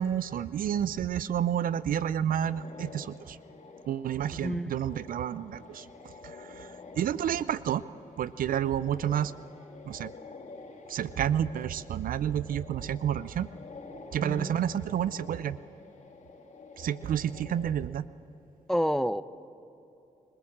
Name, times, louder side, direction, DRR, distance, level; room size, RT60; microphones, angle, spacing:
voice 1, 0.0-3.4 3.9-5.9 6.2-6.7 7.0-7.8 8.2-9.3 9.9-10.1 10.9-13.5 14.1-15.6 16.8-18.0, right 10 dB, 70° right, 17 dB, 0.5 m, -30 dB
sound 1, 2.4-17.7, left 3 dB, 55° left, 3.0 m, -49 dB
voice 2, 4.3-4.7 14.2-14.6 18.7-19.2, equal, 5° left, 14 dB, 0.8 m, -29 dB
27.0 x 16.5 x 7.4 m, 3.0 s
supercardioid pair, 45°, 15 cm